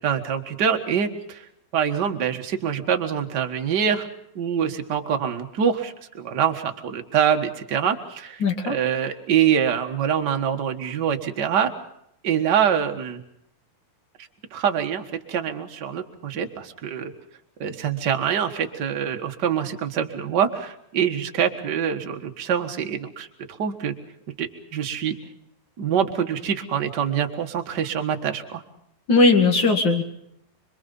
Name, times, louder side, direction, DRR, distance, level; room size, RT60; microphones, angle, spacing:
voice 1, 0.0-1.4 1.7-4.1 4.3-11.7 12.2-13.2 14.5-17.1 17.6-23.3 23.6-23.9 24.4-25.2 25.8-28.6, right 8 dB, 45° right, 5 dB, 1.4 m, -25 dB
voice 2, 8.4-8.8 29.1-30.0, left 3 dB, 40° left, 5 dB, 2.3 m, -18 dB
26.5 x 23.5 x 5.5 m, 0.76 s
omnidirectional pair, 4.0 m